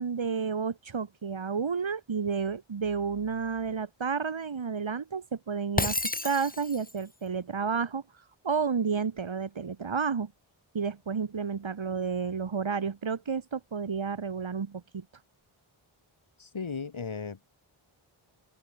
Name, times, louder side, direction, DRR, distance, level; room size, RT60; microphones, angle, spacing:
voice 1, 0.0-6.0 6.2-8.0 8.4-10.3 10.7-15.0, right 5 dB, 65° right, 3.5 m, -31 dB
Shatter, 5.8-7.0, left 2 dB, 15° left, 1.7 m, -31 dB
voice 2, 16.4-17.5, left 5 dB, 70° left, 7.6 m, -36 dB
wide cardioid pair, 110°, 49 cm